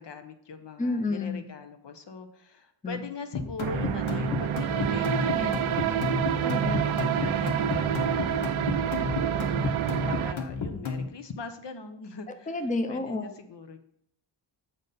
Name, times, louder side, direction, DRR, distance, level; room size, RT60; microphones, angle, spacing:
voice 1, 0.0-6.5 7.0-8.8 9.3-12.6 12.9-13.8, left 5 dB, 65° left, 7 dB, 0.9 m, -42 dB
voice 2, 0.8-1.4 2.8-3.0 5.2-5.6 6.4-7.0 12.5-13.3, left 3 dB, 15° left, 7 dB, 0.6 m, -31 dB
sound 1, 3.3-11.1, left 5 dB, 80° left, 1.2 m, -32 dB
sound 2, 3.6-10.3, right 10 dB, 90° right, 0.6 m, -28 dB
7.2 x 5.4 x 4.1 m, 0.73 s
wide cardioid pair, 75°, 47 cm